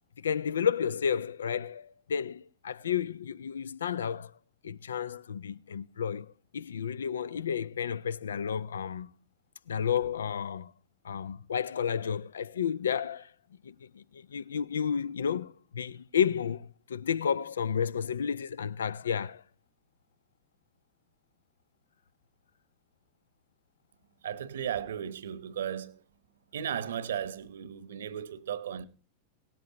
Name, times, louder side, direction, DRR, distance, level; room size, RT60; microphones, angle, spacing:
voice 1, 0.2-4.3 4.6-9.1 9.7-10.7 11.0-13.3 13.6-19.4, left 7 dB, 70° left, 0.5 m, -31 dB
voice 2, 24.2-26.0 26.5-28.9, right 9 dB, 65° right, 1.0 m, -35 dB
18.0 x 13.5 x 2.9 m
figure-of-eight pair, 90°, 0 cm